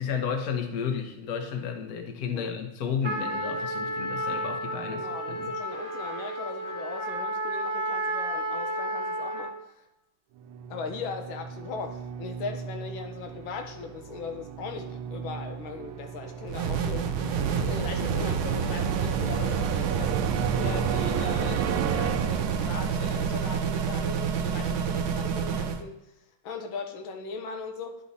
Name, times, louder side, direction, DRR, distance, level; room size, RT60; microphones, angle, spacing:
voice 1, 0.0-5.5, left 7 dB, 55° left, 5 dB, 1.3 m, -32 dB
Trumpet, 3.0-9.6, right 1 dB, 35° right, 1.3 m, -32 dB
voice 2, 4.9-9.5 10.7-17.1 17.6-26.0 26.4-28.0, left 4 dB, 85° left, 5 dB, 1.6 m, -39 dB
sound 1, 10.4-23.0, right 8 dB, 85° right, 1.3 m, -35 dB
sound 2, 16.5-25.8, right 6 dB, 65° right, 1.0 m, -28 dB
10.0 x 4.1 x 4.1 m, 0.98 s
omnidirectional pair, 2.2 m